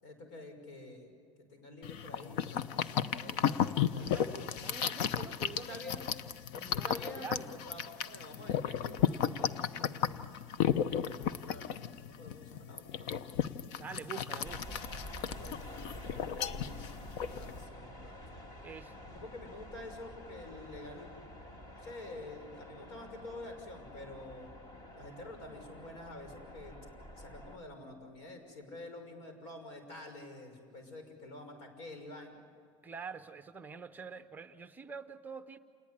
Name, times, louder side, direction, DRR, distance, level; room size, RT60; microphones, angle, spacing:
voice 1, 0.0-1.2 1.5-4.6 5.6-6.0 6.6-10.4 11.0-13.4 15.3-18.1 19.1-21.1 21.7-24.5 24.9-26.7 27.2-32.4, left 2 dB, 80° left, 6 dB, 6.0 m, -48 dB
sound 1, 1.8-17.6, left 9 dB, 55° left, 0.8 m, -34 dB
voice 2, 4.0-6.0 6.6-7.5 13.8-14.9 18.6-19.0 32.8-35.6, right 6 dB, 10° right, 8 dB, 0.6 m, -46 dB
sound 2, 14.4-27.6, equal, 30° left, 1.8 m, -49 dB
28.0 x 19.5 x 9.9 m, 2.2 s
cardioid pair, 180°, 15 cm